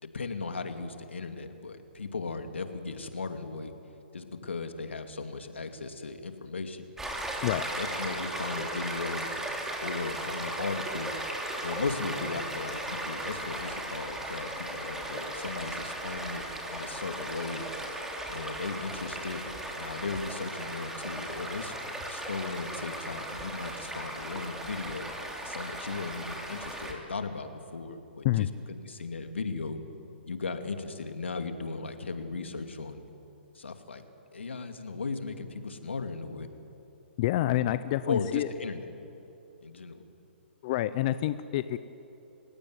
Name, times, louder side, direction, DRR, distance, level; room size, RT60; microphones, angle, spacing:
voice 1, 0.0-3.7 4.1-6.8 7.4-9.3 9.8-11.1 11.6-16.4 16.7-17.6 18.3-19.4 19.7-21.7 22.1-25.1 25.4-29.8 30.3-33.0 33.5-34.0 34.3-36.5 38.1-38.9 39.6-40.0, left 4 dB, 90° left, 6 dB, 2.5 m, -36 dB
Stream, 7.0-26.9, right 1 dB, 5° right, 3.2 m, -37 dB
voice 2, 37.2-38.5 40.6-41.8, left 14 dB, 40° left, 13 dB, 0.8 m, -27 dB
30.0 x 17.0 x 9.6 m, 2.9 s
hypercardioid pair, 135°, 6 cm